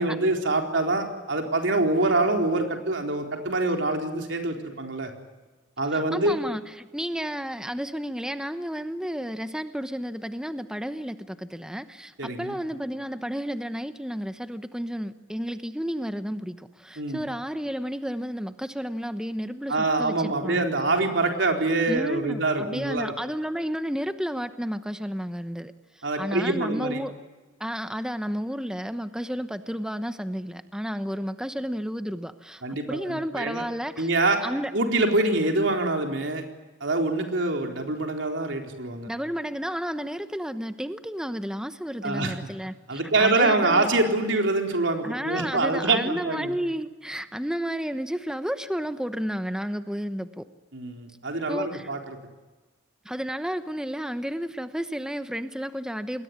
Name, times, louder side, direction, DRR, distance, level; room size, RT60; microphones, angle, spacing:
voice 1, 0.0-5.1 5.8-6.4 12.2-12.6 17.0-17.2 19.7-23.1 26.0-27.0 32.6-33.6 34.0-34.4 34.7-36.4 36.8-39.1 42.0-42.3 42.9-46.5 50.7-52.2, right 2 dB, 75° right, 3 dB, 4.2 m, -25 dB
voice 2, 5.9-20.6 21.9-27.1 27.6-32.6 32.9-34.1 34.4-34.7 39.1-43.9 45.0-50.5 51.5-51.9 53.0-56.2, equal, 5° right, 9 dB, 1.0 m, -32 dB
28.0 x 21.0 x 9.7 m, 1.2 s
head